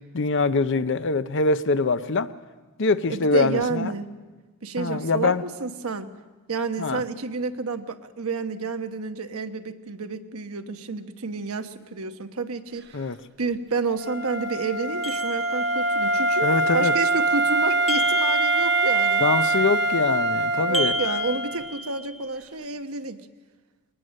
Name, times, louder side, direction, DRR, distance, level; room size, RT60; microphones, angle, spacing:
voice 1, 0.1-2.3 2.8-3.9 4.8-5.4 6.8-7.0 12.9-13.2 16.4-16.9 19.2-21.0, left 3 dB, 60° left, 0.7 m, -23 dB
voice 2, 3.1-4.1 4.6-6.1 6.5-12.8 13.4-16.5 16.7-19.2 20.6-23.2, right 4 dB, 85° right, 1.1 m, -30 dB
Wind instrument woodwind instrument, 14.0-21.8, right 2 dB, 55° right, 1.0 m, -24 dB
sound 1, 15.0-16.0 17.9-19.1 20.7-22.2, left 2 dB, ahead, 1.1 m, -32 dB
22.0 x 19.0 x 6.5 m
head